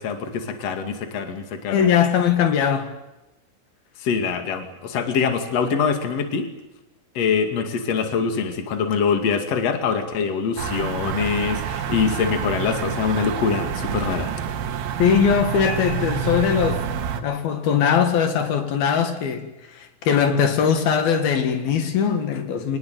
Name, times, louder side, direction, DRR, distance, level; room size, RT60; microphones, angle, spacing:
voice 1, 0.0-1.9 4.0-6.5 7.1-14.3, left 6 dB, 45° left, 3.2 m, -24 dB
voice 2, 1.7-2.9 15.0-16.9 17.2-22.8, left 7 dB, 80° left, 3.8 m, -20 dB
sound 1, 10.6-17.2, right 7 dB, 85° right, 3.5 m, -28 dB
25.5 x 19.5 x 9.3 m
omnidirectional pair, 4.3 m